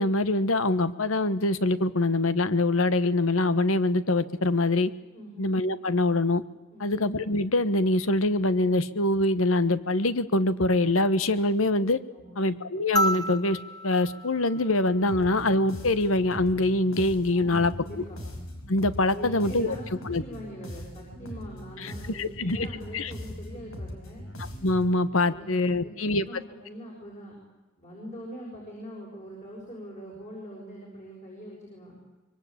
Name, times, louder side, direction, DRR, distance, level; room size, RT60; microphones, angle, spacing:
voice 1, 0.0-4.9 5.4-6.4 6.8-12.0 12.4-18.0 18.7-19.7 20.0-20.2 21.8-22.7 22.9-23.1 24.6-26.3, left 2 dB, 75° left, 14 dB, 1.3 m, -24 dB
sound 1, 13.0-15.5 17.1-17.2, equal, 20° left, 0.8 m, -31 dB
sound 2, 15.1-25.0, equal, 90° left, 5.5 m, -40 dB
voice 2, 17.3-18.2 19.1-24.2 25.2-27.4 27.8-32.0, equal, 35° left, -3 dB, 7.0 m, -43 dB
25.0 x 23.0 x 8.7 m, 1.1 s
head